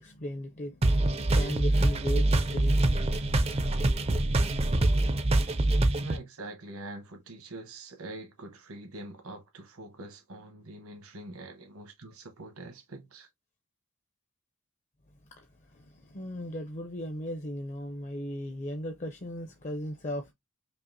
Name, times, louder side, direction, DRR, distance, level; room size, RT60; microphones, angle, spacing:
voice 1, 0.0-3.2 15.4-15.5 15.7-20.3, equal, 30° left, 0.5 m, -37 dB
sound 1, 0.8-6.2, right 1 dB, 25° right, 0.4 m, -25 dB
voice 2, 6.0-13.3, right 2 dB, 75° right, 1.1 m, -44 dB
5.3 x 2.4 x 2.7 m
head